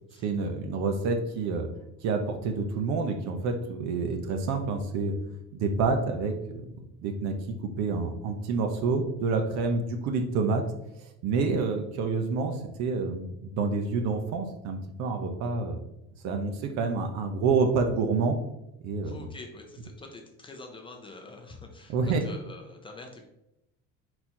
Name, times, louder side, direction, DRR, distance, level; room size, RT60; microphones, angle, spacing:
voice 1, 0.2-1.7 2.0-5.1 5.5-7.3 7.8-10.7 11.2-15.8 16.2-18.4 18.8-19.2 21.9-22.2, right 4 dB, 60° right, 6 dB, 0.9 m, -28 dB
voice 2, 19.0-23.3, left 3 dB, 15° left, 3 dB, 0.5 m, -46 dB
5.0 x 4.4 x 4.4 m, 0.85 s
cardioid pair, 170°, 31 cm